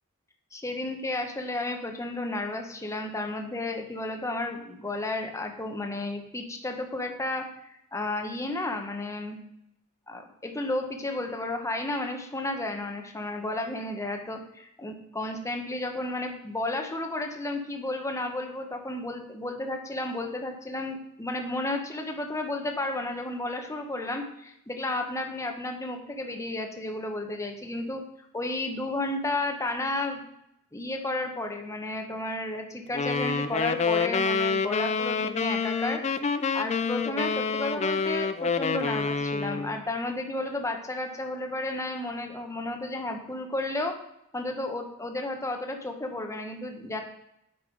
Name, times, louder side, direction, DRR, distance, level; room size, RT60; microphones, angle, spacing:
voice 1, 0.5-9.4 10.1-28.0 28.3-30.2 30.7-36.0 36.3-44.0 44.3-47.0, left 2 dB, 15° left, 3 dB, 1.0 m, -32 dB
sound 1, 32.9-39.8, left 5 dB, 30° left, 0.4 m, -27 dB
8.5 x 5.5 x 5.1 m, 0.78 s
head